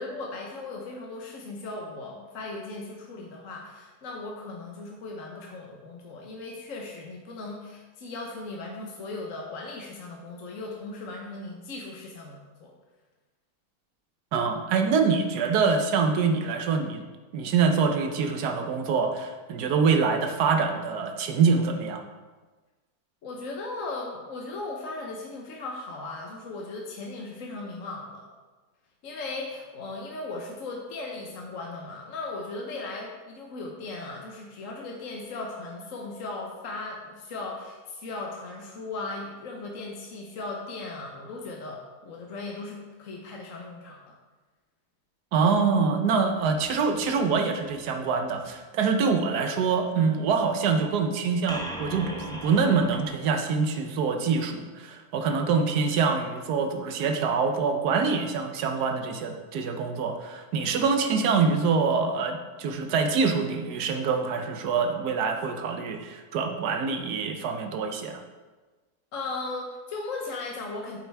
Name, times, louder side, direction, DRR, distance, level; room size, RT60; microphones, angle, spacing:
voice 1, 0.0-12.7 23.2-28.3 29.0-44.1 69.1-71.0, left 3 dB, 55° left, -1 dB, 1.3 m, -37 dB
voice 2, 14.3-17.0 17.3-22.0 45.3-68.2, right 5 dB, 80° right, 5 dB, 1.4 m, -25 dB
sound 1, 46.4-48.4 51.5-53.1, equal, 5° left, 0.5 m, -40 dB
8.7 x 7.8 x 3.4 m, 1.3 s
omnidirectional pair, 1.7 m